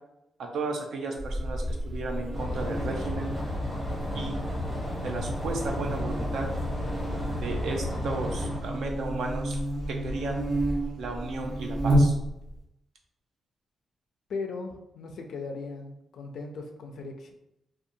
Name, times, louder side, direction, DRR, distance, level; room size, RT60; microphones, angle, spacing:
voice 1, 0.4-3.3 4.1-4.4 5.0-6.5 7.4-9.6 9.9-10.5 11.0-12.1, right 3 dB, 75° right, 2 dB, 0.5 m, -34 dB
Buzz, 1.2-12.6, right 1 dB, 40° right, 1.1 m, -31 dB
sound 1, 2.3-8.6, left 1 dB, 20° right, 0.8 m, -33 dB
voice 2, 14.3-17.3, left 4 dB, 65° left, 3 dB, 0.4 m, -38 dB
2.7 x 2.2 x 2.6 m, 0.85 s
cardioid pair, 135°, 0 cm